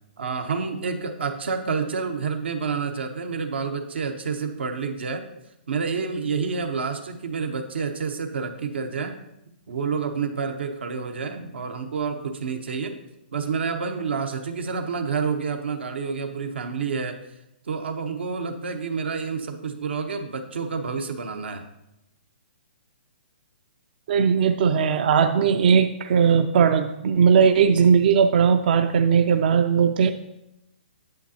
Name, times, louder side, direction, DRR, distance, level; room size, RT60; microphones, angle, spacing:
voice 1, 0.2-5.2 5.7-9.2 9.7-13.0 13.3-17.2 17.7-21.7, right 5 dB, 80° right, 5 dB, 1.0 m, -29 dB
voice 2, 24.1-30.1, right 6 dB, 55° right, 8 dB, 0.5 m, -18 dB
9.1 x 7.9 x 2.8 m, 0.86 s
hypercardioid pair, 150°, 6 cm